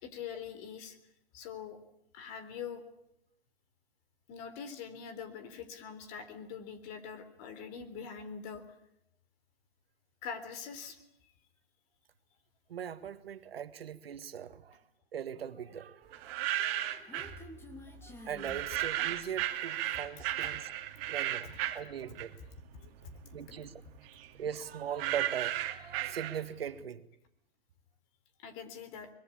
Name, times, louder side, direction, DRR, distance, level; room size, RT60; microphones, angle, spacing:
voice 1, 0.0-1.0 1.3-1.8 2.1-2.8 4.3-8.6 10.2-11.0 22.8-23.4 28.4-29.1, left 7 dB, 35° left, 3.8 m, -43 dB
voice 2, 12.7-14.8 15.1-17.0 18.0-20.7 21.1-22.4 23.3-23.7 24.4-27.1, right 8 dB, 70° right, 1.8 m, -40 dB
sound 1, 16.1-17.4 18.4-22.6 23.0-26.7, right 13 dB, 35° right, 2.5 m, -35 dB
Human voice, 16.5-19.5, left 1 dB, 5° left, 2.3 m, -51 dB
23.5 x 22.0 x 8.7 m
hypercardioid pair, 130°, 31 cm